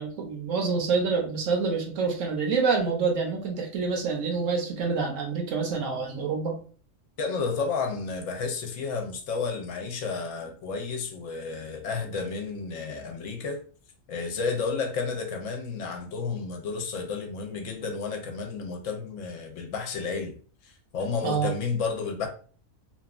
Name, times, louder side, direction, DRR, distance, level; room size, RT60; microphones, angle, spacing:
voice 1, 0.0-6.6 21.2-21.5, right 5 dB, 70° right, 2 dB, 1.0 m, -27 dB
voice 2, 7.2-13.6 14.1-20.4 20.6-22.3, left 4 dB, 70° left, 3 dB, 0.9 m, -31 dB
2.8 x 2.2 x 2.3 m, 0.43 s
omnidirectional pair, 1.4 m